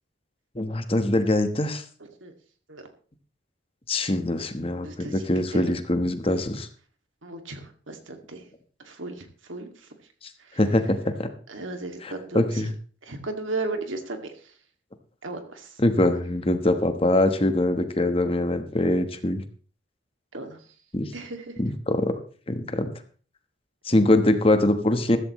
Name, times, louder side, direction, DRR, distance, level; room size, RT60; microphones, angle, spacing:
voice 1, 0.5-1.8 3.9-6.7 10.6-11.3 12.0-12.7 15.8-19.4 20.9-21.1 21.6-22.1 22.5-22.9 23.8-25.2, left 1 dB, 30° left, 8 dB, 1.2 m, -23 dB
voice 2, 2.0-2.3 2.7-2.9 4.8-5.3 5.5-5.8 7.2-8.4 8.8-9.9 10.4-10.6 11.5-12.7 13.0-14.5 15.2-15.8 20.3-20.6 21.1-21.6, right 2 dB, 80° right, 5 dB, 2.3 m, -36 dB
14.5 x 14.0 x 3.1 m, 0.41 s
head